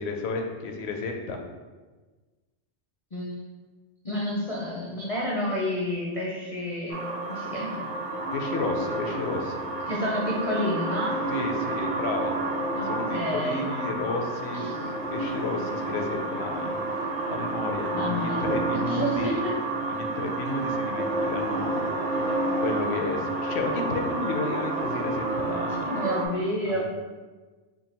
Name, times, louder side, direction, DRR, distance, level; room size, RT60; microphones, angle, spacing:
voice 1, 0.0-1.4 8.3-9.7 11.3-12.4 12.9-16.7 17.3-19.4 20.0-21.9 22.6-25.9 26.7-26.9, left 3 dB, 70° left, 3 dB, 0.8 m, -32 dB
voice 2, 3.1-3.5 4.0-7.9 9.9-11.2 12.7-13.7 14.6-14.7 17.9-18.5 18.9-19.5 25.9-26.9, left 1 dB, 45° left, -5 dB, 0.5 m, -30 dB
sound 1, 6.9-26.3, right 2 dB, 45° right, 0.5 m, -30 dB
3.6 x 2.2 x 4.1 m, 1.3 s
omnidirectional pair, 1.2 m